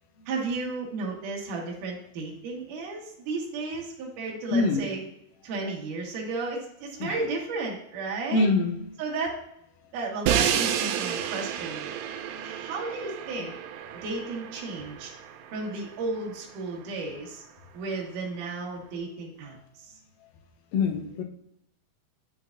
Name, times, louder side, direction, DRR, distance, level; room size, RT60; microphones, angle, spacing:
voice 1, 0.3-5.0 5.4-8.5 9.0-9.3 9.9-11.9 12.4-13.5 14.0-15.1 15.5-17.4 17.7-19.9, right 3 dB, 60° right, -2 dB, 2.7 m, -33 dB
voice 2, 4.5-4.8 7.0-7.2 8.3-8.8 20.7-21.2, left 3 dB, 70° left, 2 dB, 2.4 m, -24 dB
Crash cymbal, 10.3-16.2, right 9 dB, 85° right, 2.6 m, -31 dB
9.5 x 5.8 x 2.6 m, 0.78 s
omnidirectional pair, 4.6 m